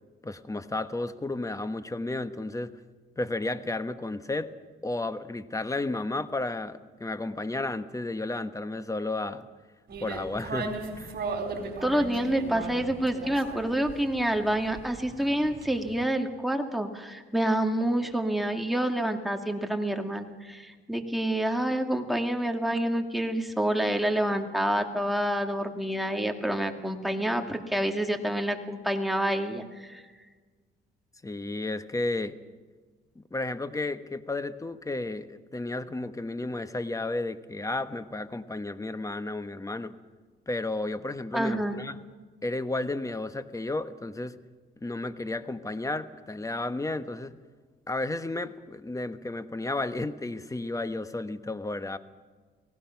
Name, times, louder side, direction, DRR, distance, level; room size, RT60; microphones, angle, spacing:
voice 1, 0.2-2.8 3.2-4.5 4.8-9.5 10.0-11.2 31.2-32.4 33.1-39.9 40.5-42.0 42.4-44.4 44.8-47.3 47.9-52.0, left 2 dB, 15° left, 11 dB, 1.2 m, -32 dB
sound 1, 9.9-16.0, right 3 dB, 55° right, 4.0 m, -37 dB
voice 2, 11.8-30.0 41.3-41.8, right 1 dB, ahead, 3 dB, 2.2 m, -28 dB
29.5 x 18.5 x 5.9 m, 1.4 s
cardioid pair, 90°, 20 cm